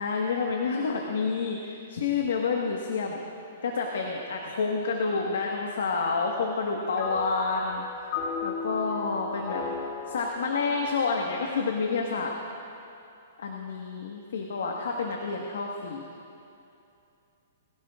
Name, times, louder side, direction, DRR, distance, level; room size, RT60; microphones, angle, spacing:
voice 1, 0.0-3.2 3.6-7.8 8.4-9.6 10.1-12.3 13.4-16.0, left 4 dB, 80° left, 0 dB, 1.4 m, -29 dB
sound 1, 7.0-12.5, left 5 dB, 35° left, 2.3 m, -36 dB
21.5 x 16.5 x 2.5 m, 2.7 s
hypercardioid pair, 155°, 0 cm